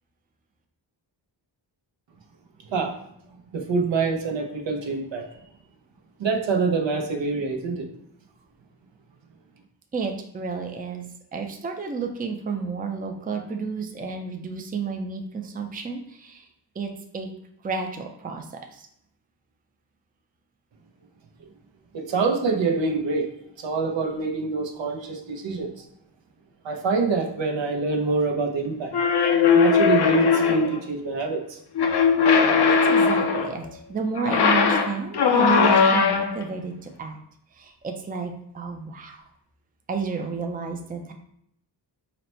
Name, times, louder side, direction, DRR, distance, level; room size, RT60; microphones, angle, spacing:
voice 1, 3.5-5.3 6.2-7.8 21.9-23.3 23.6-25.8 26.6-28.9 29.5-31.6, right 4 dB, 80° right, 3 dB, 0.7 m, -25 dB
voice 2, 9.9-16.5 16.8-17.3 17.6-18.5 18.7-18.9 32.4-37.2 37.6-39.2 39.9-41.1, right 5 dB, 20° right, 4 dB, 0.4 m, -31 dB
sound 1, 28.9-30.8 31.8-33.6 34.2-36.4, left 5 dB, 60° left, 0.6 m, -19 dB
4.0 x 2.1 x 4.3 m, 0.72 s
wide cardioid pair, 80°, 44 cm